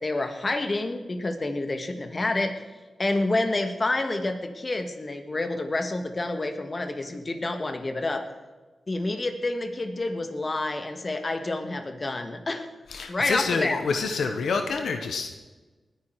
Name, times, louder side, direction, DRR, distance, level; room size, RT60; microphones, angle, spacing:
voice 1, 0.0-2.6 3.0-8.3 8.9-12.7 13.1-13.8, left 2 dB, 40° left, 7 dB, 1.9 m, -28 dB
voice 2, 12.9-15.3, left 4 dB, 85° left, 6 dB, 1.1 m, -27 dB
19.5 x 10.5 x 4.9 m, 1.3 s
cardioid pair, 55°, 0 cm